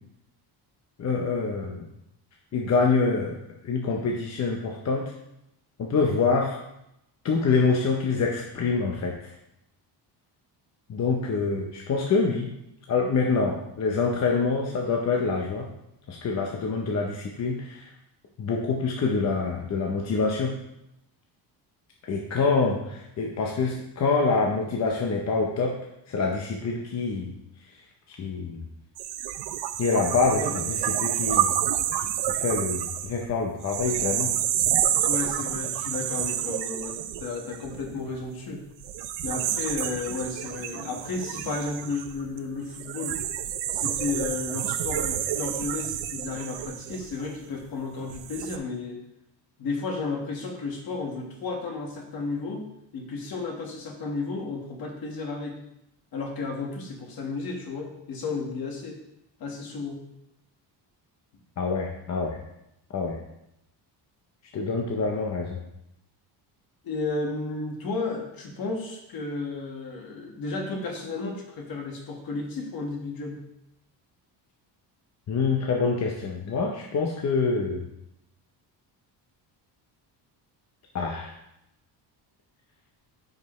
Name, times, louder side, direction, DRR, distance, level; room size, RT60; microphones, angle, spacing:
voice 1, 1.0-1.9 2.5-3.4 3.6-5.1 5.8-6.6 7.2-9.1 10.9-12.5 12.9-15.6 16.1-17.9 18.4-20.5 22.1-25.8 26.1-27.3 28.1-28.6 29.8-31.6 32.3-34.3 61.6-62.4 62.9-63.2 64.5-65.6 75.3-77.8 80.9-81.4, left 4 dB, 40° left, 0 dB, 0.8 m, -26 dB
sound 1, 29.0-38.2 38.8-47.6 48.1-48.6, right 11 dB, 85° right, 0.6 m, -29 dB
voice 2, 35.1-38.6 39.2-43.2 43.7-49.0 49.6-52.7 52.9-55.6 56.1-59.0 59.4-60.0 66.8-73.4, left 3 dB, 55° left, 1 dB, 1.6 m, -33 dB
9.4 x 5.2 x 3.1 m, 0.83 s
cardioid pair, 160°, 42 cm